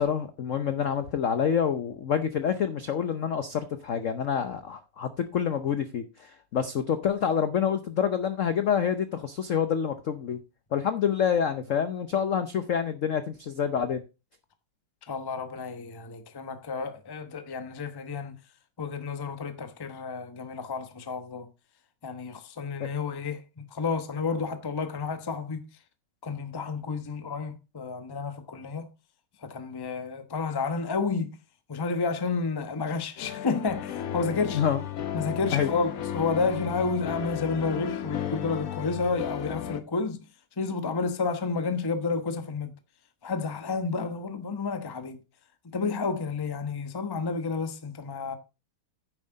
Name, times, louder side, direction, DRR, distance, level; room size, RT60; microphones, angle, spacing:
voice 1, 0.0-10.4 10.7-14.0 22.8-22.9 34.5-34.8 35.5-35.7, left 8 dB, 80° left, 0.6 m, -27 dB
voice 2, 15.1-18.3 18.8-21.5 22.0-25.6 26.2-28.9 29.4-31.4 31.7-34.6 35.1-40.3 40.6-42.7 43.2-45.2 45.6-48.4, left 4 dB, 35° left, 0.3 m, -31 dB
sound 1, 33.2-39.8, left 10 dB, 55° left, 1.1 m, -34 dB
9.8 x 7.3 x 3.9 m
omnidirectional pair, 2.4 m